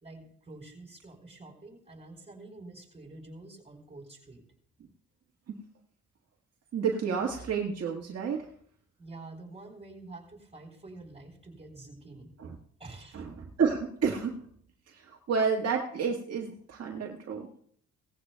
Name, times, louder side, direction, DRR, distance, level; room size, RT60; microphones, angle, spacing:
voice 1, 0.0-4.4 9.0-12.4 12.8-13.2, right 2 dB, 20° right, 2 dB, 3.8 m, -48 dB
voice 2, 6.7-8.5 12.4-12.5 13.1-14.4 14.9-17.5, right 6 dB, 55° right, 0 dB, 1.6 m, -30 dB
17.5 x 14.5 x 2.3 m, 0.62 s
cardioid pair, 90°, 30 cm